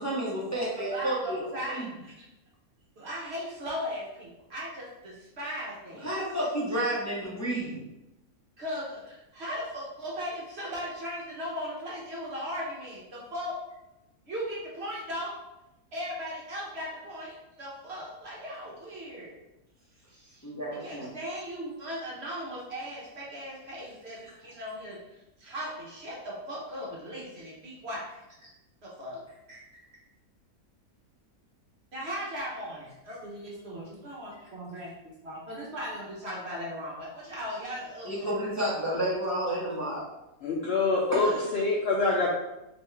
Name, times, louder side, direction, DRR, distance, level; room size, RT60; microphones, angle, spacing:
voice 1, 0.0-1.9 6.0-7.8 20.4-21.1 38.0-40.0 41.1-41.4, right 1 dB, 15° left, -7 dB, 0.6 m, -31 dB
voice 2, 0.7-2.3 3.0-6.1 6.3-6.5 8.6-13.5 14.3-15.3 15.9-19.4 20.1-20.5 20.8-28.5 28.8-29.2 29.5-29.6 31.9-34.9 35.2-38.5, equal, 50° right, -5 dB, 1.0 m, -38 dB
voice 3, 40.4-42.3, left 3 dB, 80° left, -3 dB, 0.5 m, -25 dB
3.4 x 3.0 x 3.2 m, 0.93 s
omnidirectional pair, 1.7 m